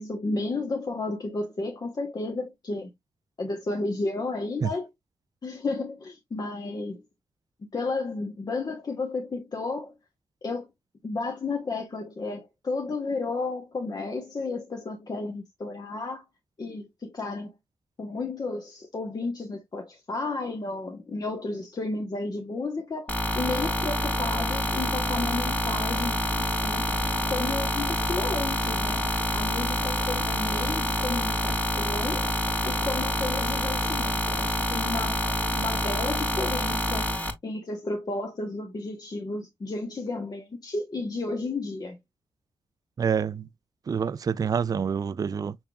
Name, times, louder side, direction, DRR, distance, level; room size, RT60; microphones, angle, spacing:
voice 1, 0.0-2.9 3.4-4.9 5.4-7.0 7.7-9.9 10.4-10.7 11.0-16.2 16.6-17.5 18.0-26.9 27.3-29.0 29.3-32.3 32.6-35.2 35.5-37.1 37.4-42.0, left 3 dB, 45° left, 1.1 m, -32 dB
sound 1, 23.1-37.3, left 1 dB, 15° left, 1.6 m, -27 dB
voice 2, 43.0-43.5 43.9-45.6, right 7 dB, 40° right, 0.3 m, -27 dB
6.2 x 3.5 x 2.2 m
cardioid pair, 60°, 10 cm